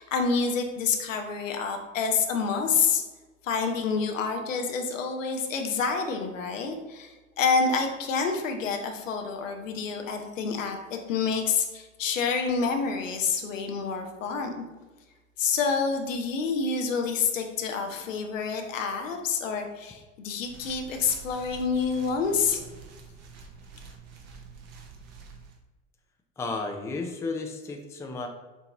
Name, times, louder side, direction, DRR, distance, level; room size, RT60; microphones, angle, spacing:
voice 1, 0.0-3.0 3.4-14.5 15.4-22.6, left 5 dB, 75° left, 4 dB, 0.8 m, -28 dB
sound 1, 20.4-25.6, right 5 dB, 40° right, 0.8 m, -47 dB
voice 2, 26.4-28.3, left 3 dB, 10° left, 3 dB, 0.4 m, -33 dB
7.0 x 2.9 x 2.5 m, 1.2 s
figure-of-eight pair, 75°, 39 cm